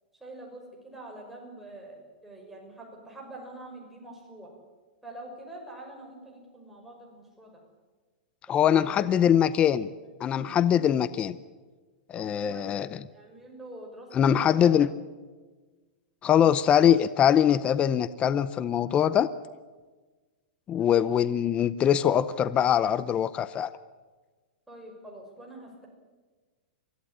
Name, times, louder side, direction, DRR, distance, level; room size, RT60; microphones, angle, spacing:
voice 1, 0.2-4.5 5.0-7.6 8.7-9.1 12.1-12.7 13.1-14.7 20.8-21.1 24.7-25.9, right 1 dB, 5° right, -1 dB, 6.0 m, -45 dB
voice 2, 8.5-9.9 10.2-11.4 12.1-13.0 14.1-14.9 16.2-19.3 20.7-23.7, left 9 dB, 20° left, 15 dB, 0.6 m, -23 dB
23.5 x 14.5 x 9.9 m, 1.3 s
hypercardioid pair, 150°, 6 cm